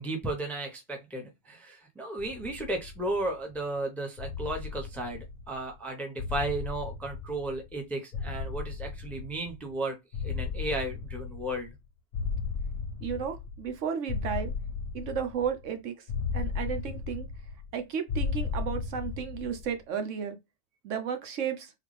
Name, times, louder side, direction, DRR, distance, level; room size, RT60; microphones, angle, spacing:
voice 1, 0.0-10.0 10.2-11.7, right 2 dB, ahead, 0.6 m, -34 dB
sound 1, 2.2-3.5 4.2-5.7 6.2-7.8 8.1-9.7 10.1-11.8 12.1-13.8 14.1-15.7 16.1-17.8 18.1-19.7, left 5 dB, 85° left, 1.0 m, -35 dB
voice 2, 13.0-14.5 14.9-15.9 16.3-17.3 17.7-20.4 20.8-21.7, right 7 dB, 70° right, 1.1 m, -33 dB
3.8 x 2.4 x 3.2 m
omnidirectional pair, 1.3 m